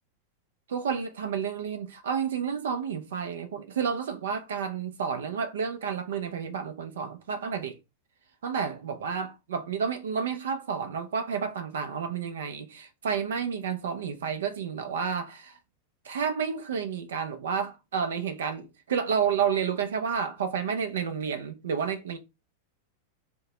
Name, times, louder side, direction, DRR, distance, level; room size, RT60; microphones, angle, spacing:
voice 1, 0.7-7.8 8.4-15.6 16.0-22.2, right 6 dB, 60° right, 0.5 m, -30 dB
2.6 x 2.1 x 3.0 m
figure-of-eight pair, 90°, 0 cm